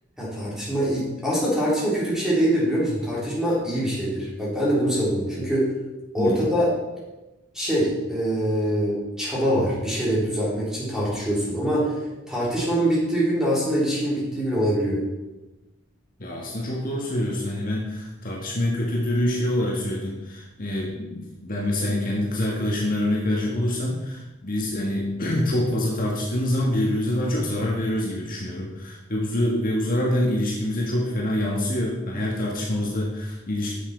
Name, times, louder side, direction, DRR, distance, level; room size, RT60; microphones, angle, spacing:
voice 1, 0.2-5.7 6.1-6.7 7.5-11.9 12.3-15.0, equal, 5° right, -7 dB, 3.8 m, -24 dB
voice 2, 16.2-33.8, left 1 dB, 45° left, -2 dB, 1.6 m, -26 dB
10.0 x 7.6 x 4.4 m, 1.1 s
head